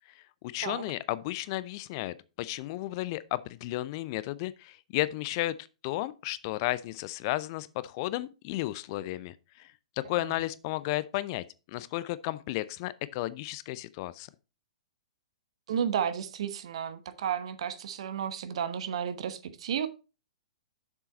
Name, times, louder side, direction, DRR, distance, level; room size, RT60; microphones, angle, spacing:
voice 1, 0.4-5.5 5.8-9.7 10.0-14.3, left 17 dB, 40° left, 0.5 m, -33 dB
voice 2, 15.7-19.9, right 8 dB, 55° right, 1.0 m, -32 dB
7.1 x 6.9 x 4.0 m
figure-of-eight pair, 115°, 4 cm